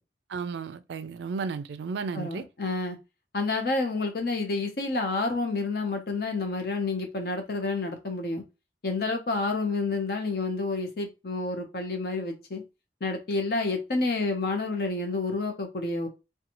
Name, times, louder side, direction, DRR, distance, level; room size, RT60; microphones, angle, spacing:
voice 1, 0.3-2.4, right 5 dB, 75° right, 0.3 m, -33 dB
voice 2, 2.1-3.0 3.3-8.4 8.8-12.6 13.0-16.1, left 3 dB, 55° left, 0.7 m, -29 dB
2.5 x 2.3 x 2.9 m
head